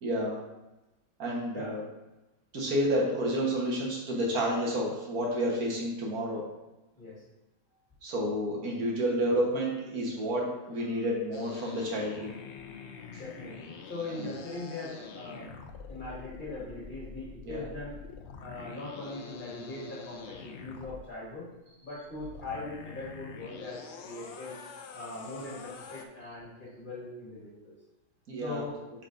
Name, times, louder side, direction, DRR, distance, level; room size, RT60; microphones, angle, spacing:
voice 1, 0.0-0.4 1.2-1.8 2.5-6.5 8.0-12.3 13.1-13.2 14.2-14.3 17.4-17.7 28.3-28.6, equal, 80° right, -3 dB, 1.8 m, -30 dB
sound 1, 11.3-21.1 22.0-26.1, left 5 dB, 65° left, 0.7 m, -45 dB
voice 2, 13.2-15.6 15.9-18.0 18.4-21.5 21.8-24.6 24.9-27.7 28.4-28.7, left 2 dB, 35° left, -7 dB, 1.7 m, -41 dB
8.1 x 4.4 x 2.6 m, 1.0 s
omnidirectional pair, 1.5 m